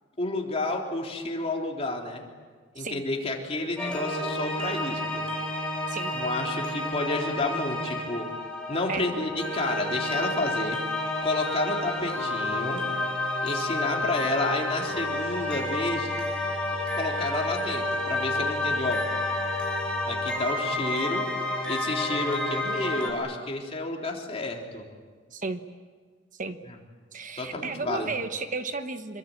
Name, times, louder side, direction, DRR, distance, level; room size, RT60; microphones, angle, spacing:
voice 1, 0.2-2.2 2.8-5.2 6.1-8.3 8.7-10.8 11.2-12.8 13.4-16.1 17.0-19.1 20.1-21.3 21.7-24.9 27.4-28.1, left 2 dB, 30° left, 0 dB, 3.7 m, -30 dB
sound 1, 3.8-23.1, left 2 dB, 5° left, 4.5 m, -30 dB
voice 2, 27.1-29.2, right 4 dB, 40° right, 8 dB, 1.1 m, -33 dB
27.0 x 23.0 x 8.7 m, 1.5 s
head